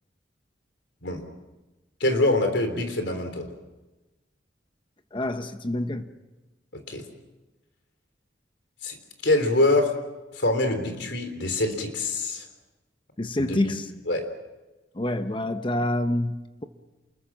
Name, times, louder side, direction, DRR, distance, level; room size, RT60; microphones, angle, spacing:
voice 1, 2.0-3.5 6.9-7.0 8.8-9.0 9.2-9.9 10.3-12.5 13.5-13.7 14.1-14.2, left 2 dB, 70° left, 6 dB, 3.6 m, -24 dB
voice 2, 5.1-6.1 13.2-13.9 14.9-16.6, left 1 dB, 25° left, 8 dB, 0.9 m, -27 dB
29.0 x 21.5 x 6.2 m, 1.1 s
head